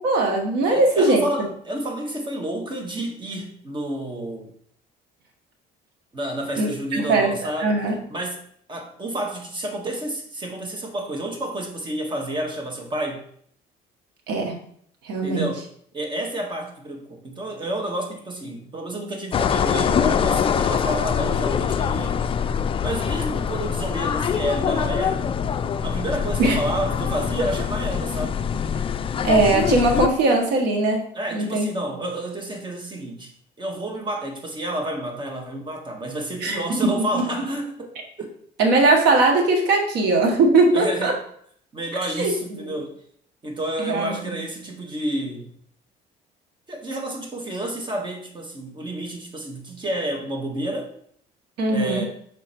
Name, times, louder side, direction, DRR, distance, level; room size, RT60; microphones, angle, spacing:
voice 1, 0.0-1.5 6.6-7.3 7.6-8.0 14.3-14.5 15.0-15.5 26.4-26.6 29.2-31.7 36.4-37.2 38.6-41.1 42.2-42.7 43.8-44.4 51.6-52.0, right 2 dB, 90° right, 2 dB, 1.5 m, -20 dB
voice 2, 0.7-4.5 6.1-7.7 8.1-8.4 8.7-13.2 15.2-15.6 15.9-22.2 22.8-25.3 25.8-28.4 31.1-33.3 33.6-38.3 40.7-41.2 41.7-43.0 43.4-45.5 46.7-50.9 51.7-52.0, right 1 dB, 30° right, 2 dB, 1.6 m, -30 dB
sound 1, 19.3-30.1, left 7 dB, 30° left, 0.4 m, -24 dB
6.4 x 4.1 x 4.4 m, 0.64 s
cardioid pair, 110°, 17 cm